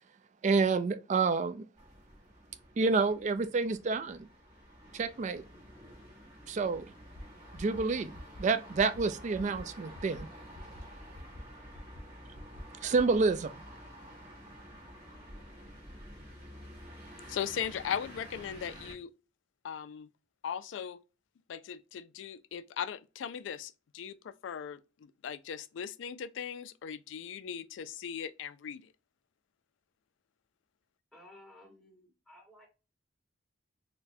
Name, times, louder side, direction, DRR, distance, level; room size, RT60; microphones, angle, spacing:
voice 1, 0.4-1.6 2.8-4.3 4.9-5.4 6.5-6.9 7.6-8.1 8.4-10.3 12.8-13.5, right 4 dB, 40° right, 0.3 m, -28 dB
sound 1, 1.8-18.9, equal, 25° right, 1.1 m, -50 dB
sound 2, 7.1-7.2 7.5-7.8 8.1-8.4 8.7-9.0 9.3-9.6 9.9-10.2 10.5-10.8 11.1-11.4 11.7-12.0 12.3-12.6 12.9-13.2, left 1 dB, 35° left, 0.6 m, -45 dB
voice 2, 17.3-19.1 19.6-20.1 20.4-21.0 21.5-28.8, left 8 dB, 75° left, 0.3 m, -38 dB
voice 3, 31.1-32.7, left 1 dB, ahead, 1.3 m, -56 dB
4.0 x 2.2 x 2.6 m
head